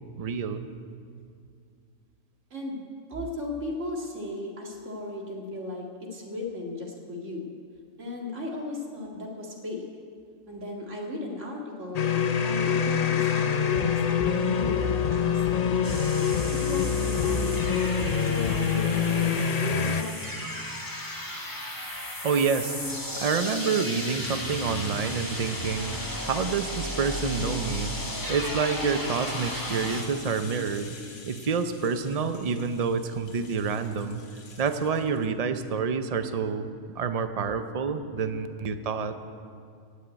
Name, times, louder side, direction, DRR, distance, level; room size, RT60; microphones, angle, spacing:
voice 1, 0.1-0.7 22.2-26.0 26.2-27.9 28.3-31.0 31.3-34.2 34.6-36.7 37.0-39.2, right 5 dB, 40° right, 9 dB, 0.6 m, -28 dB
voice 2, 3.1-7.5 8.0-9.8 10.5-12.1 12.4-16.0 16.5-17.6 18.2-20.1, left 2 dB, 70° right, -1 dB, 2.3 m, -36 dB
sound 1, 11.9-20.0, left 7 dB, 45° left, 0.5 m, -25 dB
sound 2, 15.8-30.0, left 1 dB, 15° left, 1.7 m, -35 dB
Rattle (instrument), 21.4-35.3, left 4 dB, 70° left, 1.7 m, -47 dB
16.5 x 6.5 x 9.3 m, 2.3 s
omnidirectional pair, 1.3 m